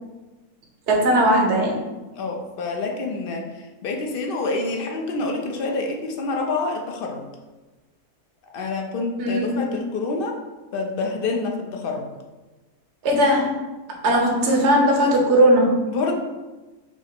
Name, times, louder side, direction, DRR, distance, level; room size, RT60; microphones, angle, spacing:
voice 1, 0.9-1.8 9.2-9.7 13.0-13.7 14.0-15.9, right 1 dB, 55° right, -1 dB, 1.1 m, -18 dB
voice 2, 2.1-7.2 8.5-10.4 10.7-12.1 15.9-16.1, left 3 dB, 55° left, 1 dB, 0.6 m, -27 dB
5.6 x 2.0 x 4.4 m, 1.2 s
omnidirectional pair, 1.5 m